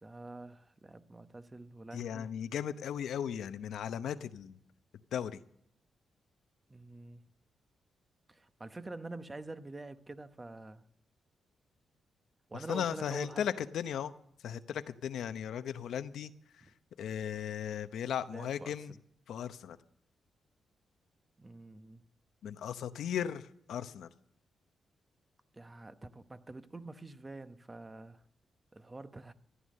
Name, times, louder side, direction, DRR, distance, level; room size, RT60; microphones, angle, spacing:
voice 1, 0.0-2.3 6.7-7.2 8.3-10.8 12.5-13.4 16.6-16.7 18.3-19.0 21.4-22.0 25.5-28.2 28.7-29.3, right 2 dB, 20° right, 0.9 m, -47 dB
voice 2, 1.9-4.6 5.1-5.4 12.7-14.1 14.4-16.3 17.0-18.9 19.3-19.8 22.4-24.1, left 9 dB, 85° left, 0.8 m, -36 dB
14.0 x 11.0 x 6.5 m
cardioid pair, 95°, 0 cm